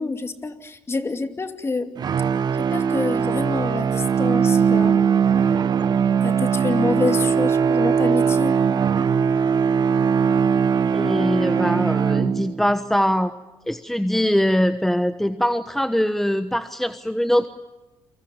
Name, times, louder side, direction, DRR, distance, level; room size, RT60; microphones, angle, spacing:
voice 1, 0.0-1.9 2.6-5.0 6.2-8.6, left 3 dB, 30° left, 7 dB, 2.5 m, -27 dB
sound 1, 2.0-12.7, right 7 dB, 50° right, 1.2 m, -20 dB
voice 2, 10.9-13.3 13.7-17.5, equal, 5° left, 10 dB, 1.1 m, -22 dB
29.0 x 24.5 x 7.2 m, 1.0 s
supercardioid pair, 75°, 9 cm